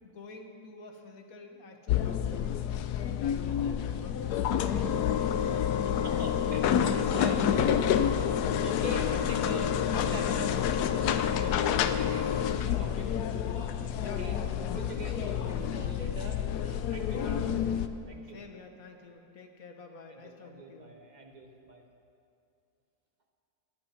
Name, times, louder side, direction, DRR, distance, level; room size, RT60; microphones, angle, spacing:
voice 1, 0.0-2.5 3.1-7.3 11.4-11.6 14.0-14.3 17.1-17.5 18.3-21.0, left 3 dB, 55° left, 4 dB, 1.6 m, -49 dB
sound 1, 1.9-17.9, left 9 dB, 70° left, 1.1 m, -28 dB
voice 2, 6.0-7.7 8.0-8.2 8.6-10.6 10.9-13.1 13.5-17.5 18.1-18.4 20.1-21.8, right 1 dB, 25° right, 1 dB, 1.3 m, -43 dB
22.0 x 8.9 x 5.8 m, 2.6 s
omnidirectional pair, 1.9 m